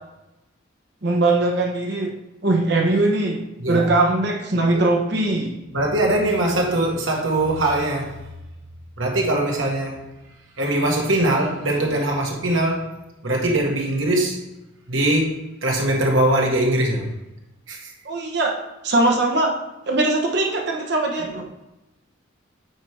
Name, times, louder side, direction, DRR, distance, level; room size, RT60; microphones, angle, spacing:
voice 1, 1.0-2.1 2.4-3.4 3.7-5.5 18.0-18.5 18.8-19.5 19.9-21.4, right 2 dB, 55° right, 1 dB, 1.1 m, -20 dB
voice 2, 3.6-3.9 4.5-4.8 5.7-8.2 9.0-10.0 10.6-12.9 13.2-14.4 14.9-17.1 17.7-17.9 21.2-21.4, right 1 dB, 75° right, 0 dB, 1.5 m, -22 dB
8.8 x 4.6 x 3.5 m, 0.99 s
head